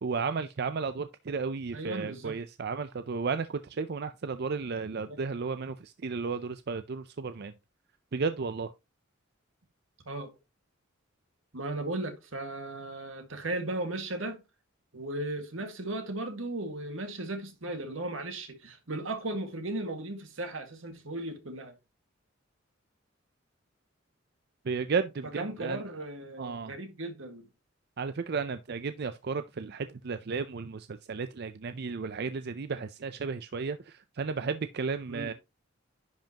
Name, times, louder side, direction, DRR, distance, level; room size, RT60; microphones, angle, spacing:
voice 1, 0.0-7.5 8.1-8.7 24.7-25.8 26.4-26.7 28.0-35.3, right 5 dB, 55° right, 0.5 m, -33 dB
voice 2, 1.7-2.4 5.1-5.2 10.1-10.3 11.5-14.4 14.9-21.8 25.2-27.5 35.1-35.3, right 2 dB, 90° right, 1.8 m, -36 dB
10.5 x 5.6 x 2.9 m
head